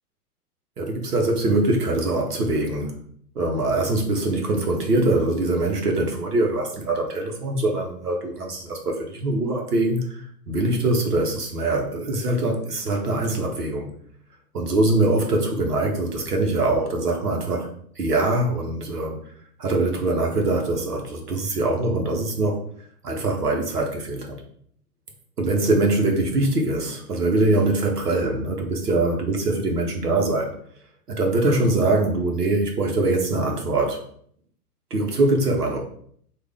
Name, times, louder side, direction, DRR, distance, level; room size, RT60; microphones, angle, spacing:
voice 1, 0.8-3.0 3.3-13.9 14.5-17.7 18.0-19.2 19.6-22.6 23.0-24.4 25.4-30.5 31.1-34.0 34.9-35.8, right 2 dB, 80° right, 2 dB, 1.0 m, -23 dB
3.2 x 2.4 x 3.5 m, 0.62 s
figure-of-eight pair, 105°, 46 cm